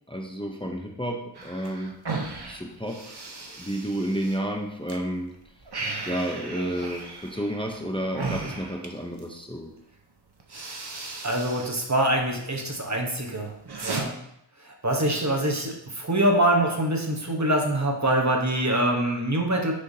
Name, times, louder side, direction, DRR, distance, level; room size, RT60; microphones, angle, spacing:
voice 1, 0.1-2.0 2.5-3.2 3.6-5.3 6.1-9.7, equal, 10° left, 1 dB, 0.7 m, -31 dB
sound 1, 1.3-5.0 5.3-9.4 10.0-10.1 10.4-11.8 12.1-12.7 13.1-14.0, right 3 dB, 60° right, 0.9 m, -36 dB
voice 2, 11.2-13.5 13.8-14.1 14.6-19.7, right 1 dB, 40° right, 1 dB, 1.1 m, -24 dB
6.5 x 5.7 x 2.8 m, 0.78 s
wide cardioid pair, 40°, 44 cm